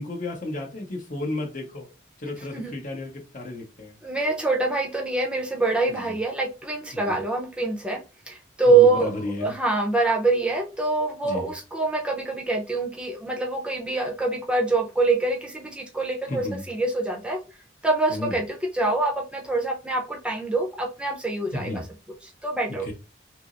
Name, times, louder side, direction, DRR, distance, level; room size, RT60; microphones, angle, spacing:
voice 1, 0.0-1.9 2.2-4.0 6.9-7.2 8.6-9.5 11.2-11.5 16.3-16.6 18.1-18.4 21.5-21.9 22.8-22.9, left 2 dB, 45° left, 0 dB, 1.0 m, -33 dB
voice 2, 4.0-8.0 8.3-9.1 9.4-17.4 17.8-21.8 22.4-22.9, right 3 dB, 5° right, 1 dB, 0.7 m, -25 dB
5.8 x 2.0 x 2.5 m, 0.32 s
head